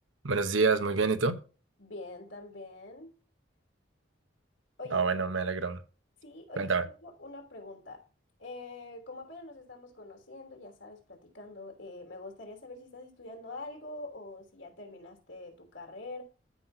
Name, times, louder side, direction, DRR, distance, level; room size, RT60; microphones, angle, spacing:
voice 1, 0.2-1.4 4.9-5.8 6.6-6.8, right 4 dB, 85° right, 1.0 m, -27 dB
voice 2, 1.8-3.1 4.8-5.0 6.2-8.1 8.4-16.2, left 2 dB, 70° left, 3.1 m, -45 dB
13.5 x 5.8 x 2.8 m
head